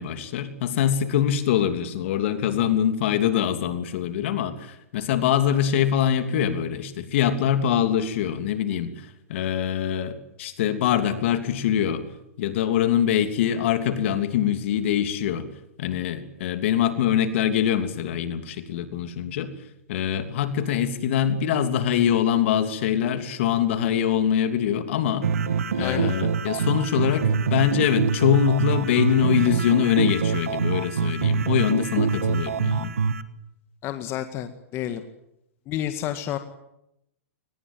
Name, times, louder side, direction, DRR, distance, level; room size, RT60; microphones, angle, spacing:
voice 1, 0.0-12.1 12.4-15.5 15.8-19.5 19.9-25.3 25.7-32.9, left 9 dB, 60° left, 9 dB, 3.1 m, -24 dB
sound 1, 25.2-33.2, right 6 dB, 85° right, 1.7 m, -25 dB
voice 2, 25.8-26.1 33.8-35.0 35.7-36.4, left 11 dB, 35° left, 8 dB, 1.9 m, -30 dB
23.5 x 20.0 x 9.1 m, 0.82 s
hypercardioid pair, 125°, 7 cm